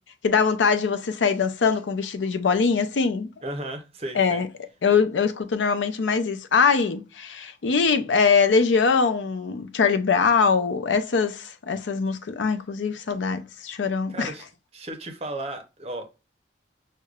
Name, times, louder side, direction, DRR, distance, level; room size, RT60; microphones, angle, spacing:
voice 1, 0.2-3.3 4.2-4.5 4.8-14.3, left 5 dB, 85° left, 0.5 m, -22 dB
voice 2, 3.4-4.4 14.1-14.5 14.7-16.1, right 1 dB, 35° right, 0.7 m, -34 dB
6.4 x 2.2 x 2.3 m
head